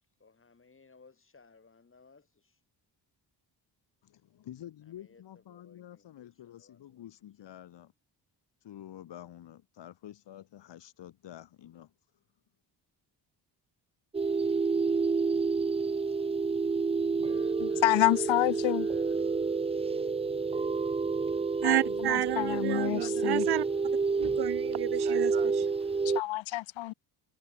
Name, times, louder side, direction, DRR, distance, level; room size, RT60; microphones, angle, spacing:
voice 1, 0.2-2.6 4.9-7.1 17.1-19.3, left 4 dB, 30° left, 4.4 m, -57 dB
voice 2, 4.0-7.9 8.6-11.9, left 12 dB, 70° left, 2.0 m, -49 dB
sound 1, 14.1-26.2, right 4 dB, 15° right, 0.4 m, -29 dB
voice 3, 17.6-18.9 21.6-23.5 26.0-26.9, left 17 dB, 90° left, 0.7 m, -29 dB
voice 4, 21.6-23.7 24.2-25.7, right 13 dB, 60° right, 0.7 m, -31 dB
cardioid pair, 125°, 44 cm